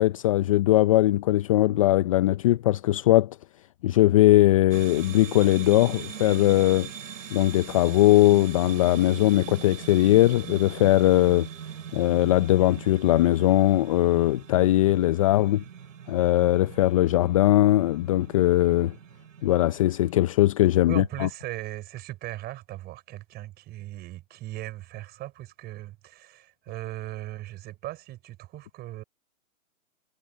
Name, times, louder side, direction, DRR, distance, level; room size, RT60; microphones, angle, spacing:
voice 1, 0.0-3.4 3.8-6.9 7.3-11.5 11.9-15.6 16.1-18.9 19.4-21.3, left 15 dB, 25° left, 0.5 m, -20 dB
sound 1, 4.7-20.1, right 8 dB, 65° right, 5.5 m, -42 dB
voice 2, 20.8-29.0, right 16 dB, 25° right, 5.0 m, -38 dB
hypercardioid pair, 140°, 42 cm